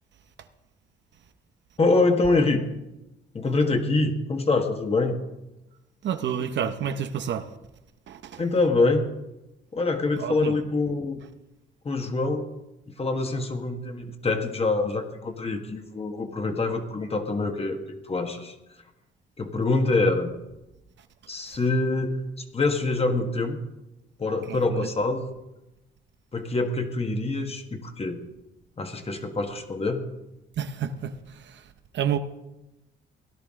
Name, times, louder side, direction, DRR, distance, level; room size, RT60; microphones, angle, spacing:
voice 1, 1.8-2.6 3.3-5.1 8.4-9.1 9.7-11.2 11.8-12.5 12.9-17.8 18.1-18.5 19.4-20.3 21.3-22.2 22.5-23.6 24.2-25.3 26.3-28.2 28.8-30.0, left 3 dB, 30° left, 1.6 m, -25 dB
voice 2, 6.0-7.5 8.1-8.4 10.2-10.6 24.5-24.9 30.6-31.1 31.4-31.6 31.9-32.2, right 8 dB, 65° right, 0.9 m, -29 dB
16.5 x 11.0 x 3.7 m
cardioid pair, 90°, 20 cm